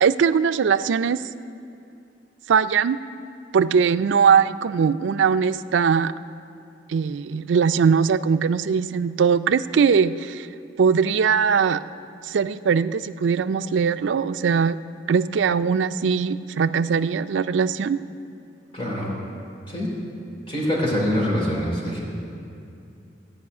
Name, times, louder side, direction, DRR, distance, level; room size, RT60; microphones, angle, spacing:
voice 1, 0.0-1.2 2.5-3.0 3.5-6.1 6.9-10.5 10.8-11.8 12.3-14.8 15.1-18.0, right 6 dB, 85° right, 14 dB, 0.4 m, -20 dB
voice 2, 18.7-19.1 19.7-19.9 20.5-22.0, equal, 30° left, -4 dB, 3.1 m, -24 dB
14.5 x 5.6 x 9.4 m, 2.6 s
head